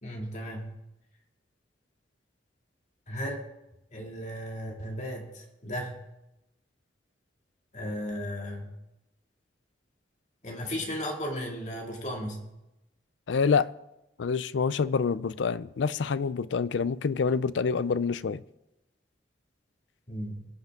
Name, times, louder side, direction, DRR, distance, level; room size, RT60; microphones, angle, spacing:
voice 1, 0.0-0.8 3.1-3.4 3.9-6.0 7.7-8.8 10.4-12.5 20.1-20.5, equal, 40° left, 2.2 m, -35 dB
voice 2, 13.3-13.7 14.2-18.4, left 5 dB, 80° left, 0.4 m, -27 dB
22.0 x 8.1 x 3.6 m
head